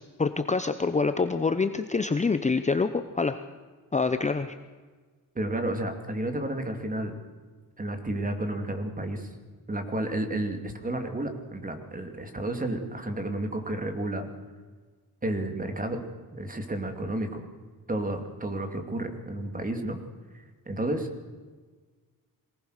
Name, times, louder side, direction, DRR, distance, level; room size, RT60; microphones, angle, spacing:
voice 1, 0.2-3.4 3.9-4.5, left 4 dB, 20° left, 9 dB, 0.8 m, -26 dB
voice 2, 5.3-7.2 7.8-9.3 9.7-14.3 15.2-16.0 16.3-17.4 17.9-20.0 20.3-21.1, right 1 dB, 20° right, 6 dB, 2.7 m, -31 dB
23.0 x 18.5 x 6.6 m, 1.4 s
wide cardioid pair, 135°, 37 cm